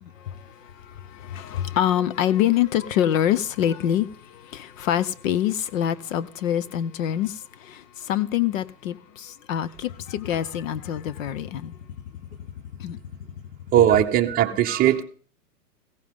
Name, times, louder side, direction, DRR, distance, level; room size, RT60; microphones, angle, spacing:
voice 1, 0.0-11.8 12.8-13.0, left 11 dB, 50° left, 0.9 m, -26 dB
voice 2, 13.7-15.0, right 11 dB, 20° right, 1.0 m, -19 dB
16.0 x 14.5 x 3.7 m
hypercardioid pair, 145°, 49 cm